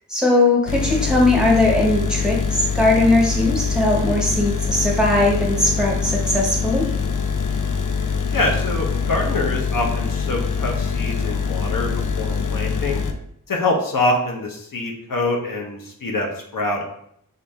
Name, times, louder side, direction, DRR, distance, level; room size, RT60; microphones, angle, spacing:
voice 1, 0.1-6.9, left 2 dB, ahead, -2 dB, 1.3 m, -19 dB
sound 1, 0.7-13.1, left 5 dB, 65° left, 0.5 m, -24 dB
voice 2, 8.3-13.0 13.5-16.8, left 2 dB, 90° left, 1 dB, 0.9 m, -25 dB
5.7 x 2.6 x 3.4 m, 0.72 s
wide cardioid pair, 65°, 32 cm